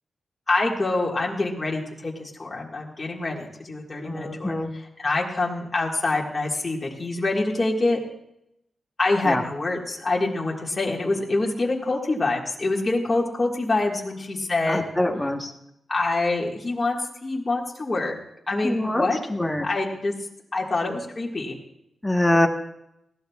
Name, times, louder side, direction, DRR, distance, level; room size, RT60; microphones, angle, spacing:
voice 1, 0.5-8.0 9.0-14.8 15.9-18.1 18.5-19.2 19.6-20.1 20.5-21.6, left 2 dB, 25° left, -2 dB, 1.7 m, -26 dB
voice 2, 4.0-4.7 9.2-9.4 14.7-15.5 18.6-19.6 22.0-22.5, left 1 dB, 5° left, 3 dB, 1.1 m, -24 dB
19.5 x 15.5 x 2.3 m, 0.82 s
wide cardioid pair, 155°, 0 cm